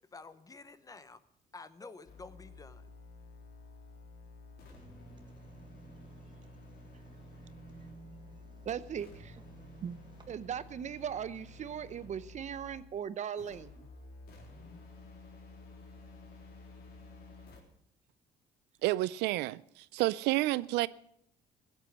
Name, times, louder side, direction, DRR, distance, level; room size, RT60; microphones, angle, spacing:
voice 1, 0.0-1.2 1.5-2.9, left 3 dB, 20° left, 0.9 m, -50 dB
sound 1, 2.1-12.9 13.4-17.6, left 2 dB, 70° left, 3.8 m, -52 dB
sound 2, 4.7-10.3, right 4 dB, 25° right, 1.7 m, -56 dB
voice 2, 8.6-9.4 9.8-10.0 10.3-13.9, right 8 dB, 45° right, 0.8 m, -38 dB
voice 3, 18.8-20.9, right 18 dB, 90° right, 0.4 m, -30 dB
16.0 x 8.3 x 8.0 m
cardioid pair, 110°, 17 cm